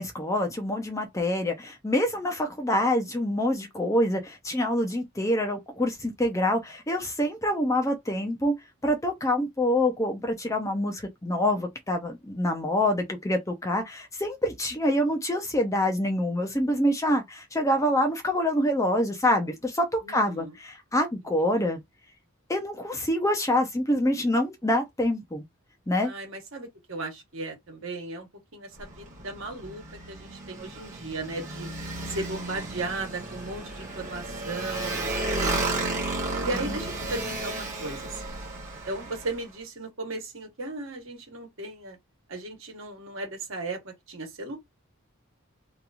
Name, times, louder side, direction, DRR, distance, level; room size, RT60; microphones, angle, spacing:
voice 1, 0.0-8.5 8.8-21.8 22.5-25.4 25.9-26.1, left 1 dB, 15° left, 0.5 m, -26 dB
voice 2, 20.0-20.5 26.0-31.7 32.1-36.0 36.4-38.3 38.9-42.0 42.3-44.6, right 2 dB, 60° right, 1.2 m, -36 dB
Motorcycle, 28.7-39.4, right 2 dB, 35° right, 1.1 m, -33 dB
2.9 x 2.5 x 2.3 m
head